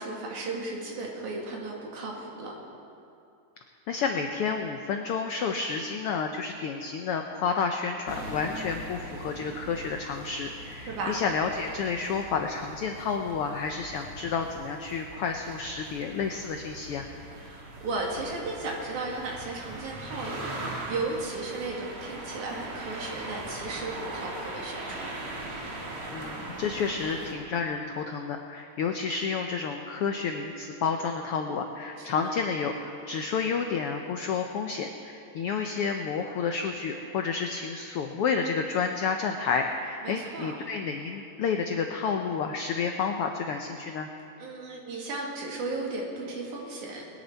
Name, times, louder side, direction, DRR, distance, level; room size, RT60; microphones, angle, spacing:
voice 1, 0.0-2.6 10.9-11.2 17.4-25.2 32.0-32.4 40.0-40.6 44.4-47.0, right 3 dB, 85° right, -2 dB, 3.6 m, -35 dB
voice 2, 3.9-17.1 26.1-32.7 33.1-44.1, left 5 dB, 85° left, 4 dB, 1.2 m, -30 dB
sound 1, 8.1-27.3, right 1 dB, 60° right, 3.1 m, -40 dB
22.0 x 10.0 x 4.5 m, 2.6 s
omnidirectional pair, 3.4 m